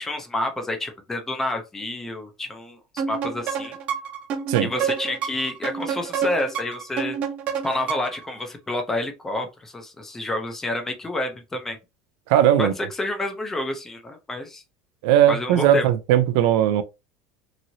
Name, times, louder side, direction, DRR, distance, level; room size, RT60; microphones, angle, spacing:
voice 1, 0.0-2.8 3.1-3.8 4.6-7.2 7.6-11.8 12.6-12.7 13.0-14.6 15.3-15.9, left 1 dB, 10° left, 0.5 m, -29 dB
sound 1, 3.0-8.3, right 7 dB, 40° right, 0.7 m, -29 dB
voice 2, 12.3-12.7 15.0-16.8, right 10 dB, 70° right, 0.4 m, -18 dB
3.0 x 2.6 x 2.7 m
cardioid pair, 150°, 3 cm